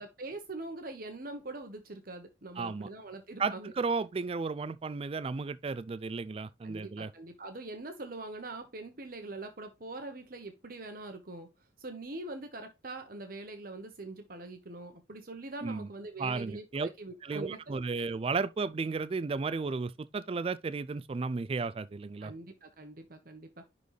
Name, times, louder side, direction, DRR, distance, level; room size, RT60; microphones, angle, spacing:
voice 1, 0.0-3.7 6.6-11.5 11.8-18.1 22.2-23.7, right 2 dB, 50° right, 1.0 m, -43 dB
voice 2, 2.6-2.9 3.4-7.1 15.6-15.9 16.2-16.9 17.2-22.3, right 4 dB, 30° right, 0.3 m, -34 dB
10.5 x 4.0 x 3.2 m
head